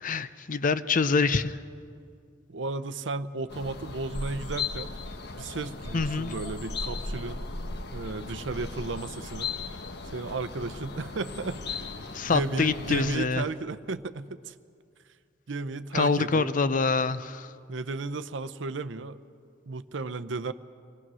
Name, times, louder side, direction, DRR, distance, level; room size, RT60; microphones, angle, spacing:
voice 1, 0.0-1.6 5.9-6.3 12.1-13.4 15.9-17.5, left 4 dB, 45° left, 13 dB, 0.6 m, -25 dB
voice 2, 2.5-5.0 5.4-7.4 7.9-9.5 10.1-11.9 12.3-14.5 15.5-16.5 17.7-19.2 19.7-20.5, right 3 dB, 75° right, 11 dB, 0.7 m, -34 dB
sound 1, 3.5-13.2, left 3 dB, 60° left, 1.1 m, -37 dB
26.5 x 18.5 x 6.2 m, 2.3 s
head